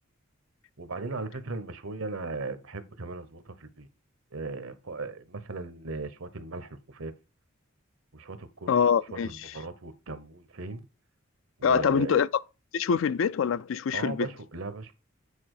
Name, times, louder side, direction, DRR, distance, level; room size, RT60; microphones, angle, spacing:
voice 1, 0.8-3.9 4.3-7.1 8.1-8.7 9.1-10.8 11.6-12.2 13.9-14.9, right 3 dB, 80° right, 1.1 m, -37 dB
voice 2, 8.7-9.3 11.6-12.3 12.7-14.3, left 6 dB, 65° left, 0.4 m, -24 dB
8.6 x 4.6 x 4.8 m
head